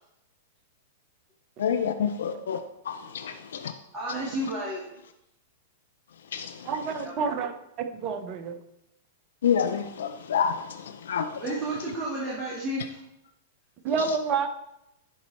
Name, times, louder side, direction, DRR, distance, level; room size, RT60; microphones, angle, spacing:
voice 1, 1.6-2.6 2.8-3.7 6.3-6.7 9.4-11.4 14.0-14.2, left 7 dB, 70° left, 8 dB, 0.5 m, -28 dB
voice 2, 3.9-4.9 7.0-7.3 11.4-13.0, right 1 dB, 20° right, -7 dB, 2.6 m, -32 dB
voice 3, 6.6-7.5 7.8-8.6 13.8-14.5, right 5 dB, 40° right, 8 dB, 0.9 m, -28 dB
11.0 x 4.1 x 4.3 m, 0.82 s
hypercardioid pair, 105°, 0 cm